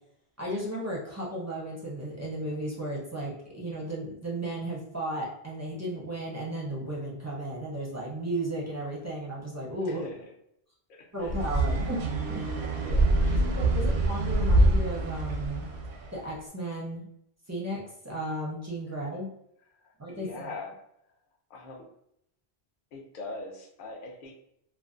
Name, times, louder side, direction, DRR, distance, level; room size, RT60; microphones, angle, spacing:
voice 1, 0.4-10.0 11.1-12.5 13.3-15.7 16.1-17.1 17.5-19.3 20.0-20.5, right 1 dB, 20° right, -4 dB, 0.4 m, -34 dB
voice 2, 9.8-10.3 10.9-11.4 12.8-13.9 19.8-20.7 21.5-21.9 22.9-24.3, left 2 dB, 60° left, 0 dB, 0.7 m, -43 dB
sound 1, 11.2-16.1, right 2 dB, 85° right, 0.8 m, -25 dB
2.5 x 2.2 x 2.4 m, 0.75 s
omnidirectional pair, 1.0 m